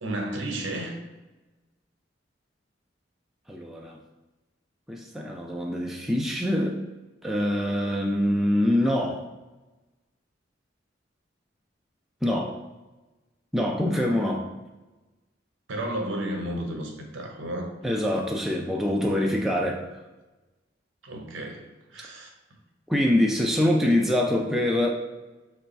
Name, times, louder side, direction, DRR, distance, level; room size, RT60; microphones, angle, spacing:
voice 1, 0.0-0.9 15.7-17.7 21.0-21.7 21.9-22.3, right 1 dB, 80° right, 3 dB, 0.7 m, -32 dB
voice 2, 3.5-4.0 4.9-6.8 7.2-9.2 12.2-12.5 13.5-14.5 17.8-19.9 22.9-24.9, left 1 dB, ahead, -1 dB, 0.3 m, -24 dB
3.3 x 2.3 x 4.0 m, 1.1 s
head